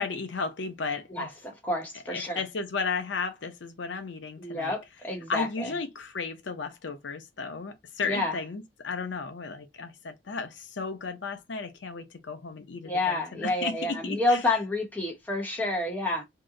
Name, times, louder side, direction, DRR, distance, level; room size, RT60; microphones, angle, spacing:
voice 1, 0.0-1.3 2.1-4.8 5.3-14.4, left 4 dB, 75° left, 0.6 m, -34 dB
voice 2, 1.1-2.4 4.4-5.7 8.1-8.4 12.8-16.2, left 2 dB, 10° left, 0.9 m, -29 dB
2.8 x 2.1 x 3.6 m
head